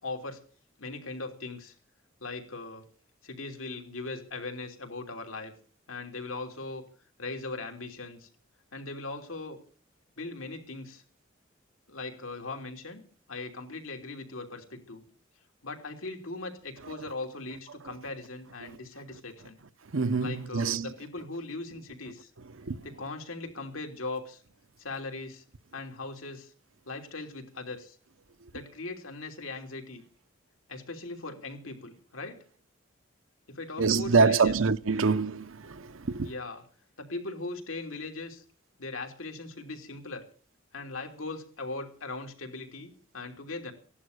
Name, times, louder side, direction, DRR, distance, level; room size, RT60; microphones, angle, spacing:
voice 1, 0.0-0.4 0.8-1.7 2.2-2.9 3.2-5.5 5.9-6.8 7.2-8.3 8.7-9.6 10.2-11.0 11.9-13.0 13.3-15.0 15.6-19.6 20.2-22.3 22.8-24.4 24.8-25.4 25.7-26.5 26.9-28.0 28.5-30.0 30.7-32.4 33.5-34.5 36.2-36.6 37.0-38.4 38.8-40.3 40.7-43.7, left 3 dB, 90° left, 3.1 m, -39 dB
voice 2, 19.9-20.9 22.7-22.8 33.8-36.3, right 4 dB, 80° right, 0.8 m, -25 dB
16.0 x 11.0 x 6.7 m
head